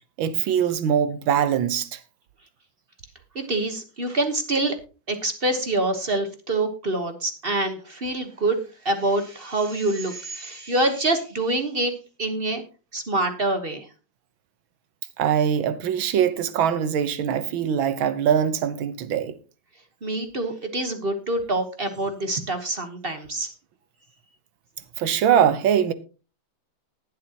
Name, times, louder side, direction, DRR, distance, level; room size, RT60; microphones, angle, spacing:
voice 1, 0.2-2.0 15.2-19.4 25.0-25.9, right 8 dB, 85° right, 1.8 m, -22 dB
voice 2, 3.3-4.8 5.1-8.6 8.8-11.9 12.2-12.6 12.9-13.9 20.0-23.5, right 2 dB, 35° right, 1.2 m, -26 dB
19.5 x 7.7 x 2.9 m
omnidirectional pair, 2.1 m